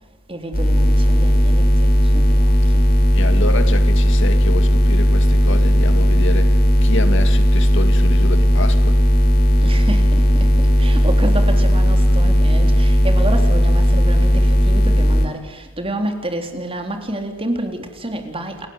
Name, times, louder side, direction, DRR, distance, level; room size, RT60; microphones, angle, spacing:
voice 1, 0.3-2.8 9.6-18.7, right 1 dB, 25° right, 3.7 m, -29 dB
sound 1, 0.5-15.3, equal, 45° left, 4.4 m, -15 dB
voice 2, 3.1-9.0, left 2 dB, 65° left, 2.2 m, -27 dB
30.0 x 15.5 x 9.7 m
head